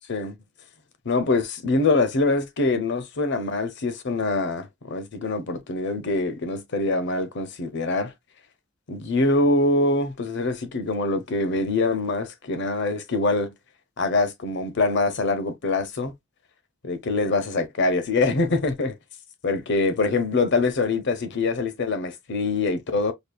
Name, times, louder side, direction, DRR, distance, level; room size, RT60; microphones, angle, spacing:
voice 1, 1.1-8.1 8.9-13.5 14.0-16.1 16.8-18.9 19.4-23.1, left 3 dB, 60° left, 0.7 m, -24 dB
5.2 x 2.3 x 2.2 m
head